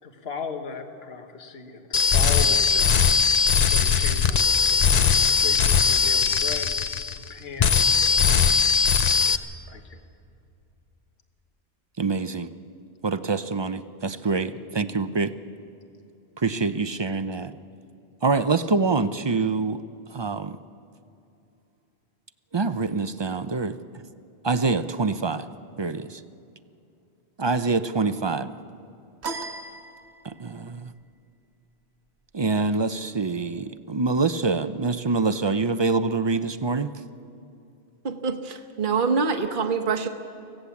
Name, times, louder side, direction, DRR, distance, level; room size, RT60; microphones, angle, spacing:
voice 1, 0.0-3.2 3.7-10.0, left 5 dB, 65° left, 6 dB, 1.5 m, -38 dB
sound 1, 1.9-7.3 7.6-9.4, left 6 dB, 45° left, 0.7 m, -20 dB
voice 2, 12.0-12.5 13.0-15.3 16.4-17.5 18.2-19.8 20.1-20.6 22.5-23.8 24.4-25.5 25.8-26.2 27.4-28.5 30.2-30.9 32.3-36.9, right 4 dB, 35° right, 11 dB, 0.5 m, -25 dB
sound 2, 29.2-30.6, right 3 dB, 80° right, 1.5 m, -36 dB
voice 3, 38.0-40.1, right 5 dB, 50° right, 5 dB, 1.2 m, -25 dB
24.5 x 17.0 x 7.2 m, 2.7 s
omnidirectional pair, 1.1 m